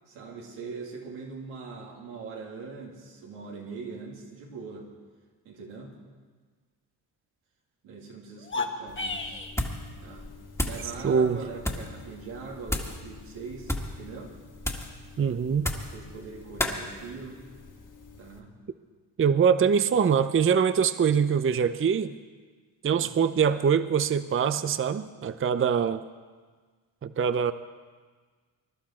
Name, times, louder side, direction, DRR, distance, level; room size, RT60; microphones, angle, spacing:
voice 1, 0.1-4.9 5.4-6.0 7.8-9.4 10.0-10.3 10.6-14.3 15.9-17.4 18.2-18.5 22.9-23.2, right 4 dB, 90° right, -2 dB, 2.7 m, -42 dB
sound 1, 8.4-9.6, left 3 dB, 25° left, 1.5 m, -32 dB
sound 2, 8.9-18.4, left 4 dB, 40° left, 1.9 m, -49 dB
sound 3, 9.5-9.9 10.2-10.9 11.6-11.9 12.7-13.0 13.6-14.0 14.6-15.0 15.6-16.0 16.6-16.8, left 1 dB, 5° left, 1.9 m, -31 dB
voice 2, 11.0-11.4 15.2-15.7 19.2-22.1 22.8-26.0 27.0-27.5, right 7 dB, 25° right, 12 dB, 0.6 m, -23 dB
22.0 x 11.5 x 4.4 m, 1.5 s
supercardioid pair, 55°, 47 cm